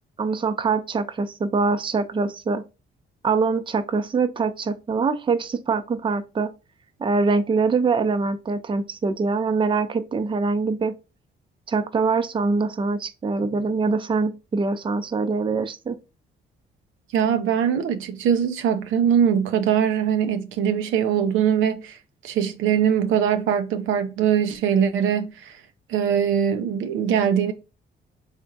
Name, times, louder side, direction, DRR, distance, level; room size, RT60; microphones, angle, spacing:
voice 1, 0.2-2.6 3.2-6.5 7.0-10.9 11.7-16.0, right 4 dB, 25° right, 0.5 m, -24 dB
voice 2, 17.1-22.0 22.2-25.5 25.9-27.5, right 8 dB, 85° right, 0.6 m, -22 dB
3.6 x 3.4 x 2.6 m
cardioid pair, 90°, 20 cm